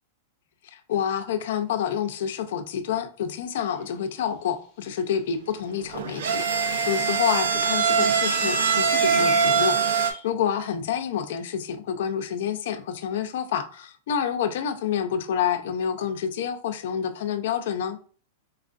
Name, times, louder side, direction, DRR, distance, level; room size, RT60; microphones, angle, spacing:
voice 1, 0.6-18.0, left 8 dB, 65° left, 0.5 m, -28 dB
sound 1, 3.7-3.9 4.5-4.8 5.7-5.8 6.1-10.2, left 6 dB, 45° left, 0.9 m, -42 dB
sound 2, 5.8-10.1, right 6 dB, 85° right, 0.6 m, -23 dB
4.5 x 2.4 x 2.5 m
supercardioid pair, 145°, 0 cm